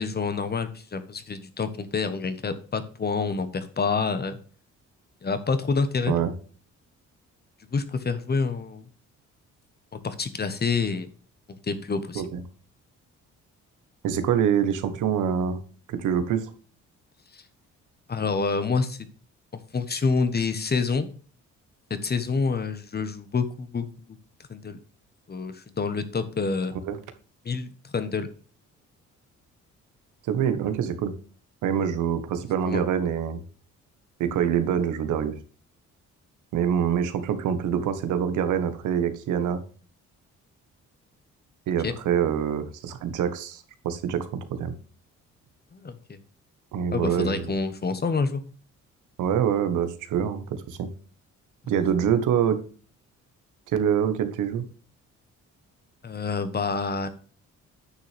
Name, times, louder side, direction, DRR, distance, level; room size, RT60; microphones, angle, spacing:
voice 1, 0.0-4.4 5.2-6.1 7.7-8.8 10.0-11.1 11.6-12.2 17.3-17.4 18.1-19.0 19.7-21.1 21.9-23.8 24.5-24.8 25.3-26.8 27.4-28.3 32.6-32.8 41.8-41.9 45.7-46.2 46.9-48.4 56.0-57.1, left 4 dB, 35° left, 11 dB, 1.3 m, -27 dB
voice 2, 14.0-15.6 15.9-16.4 26.9-27.0 30.3-31.1 31.6-33.4 34.2-35.3 36.5-39.6 41.7-44.7 46.7-47.5 49.2-50.9 51.7-52.6 53.7-54.6, right 8 dB, 85° right, 10 dB, 1.4 m, -25 dB
9.6 x 6.5 x 3.4 m, 0.40 s
cardioid pair, 90°, 30 cm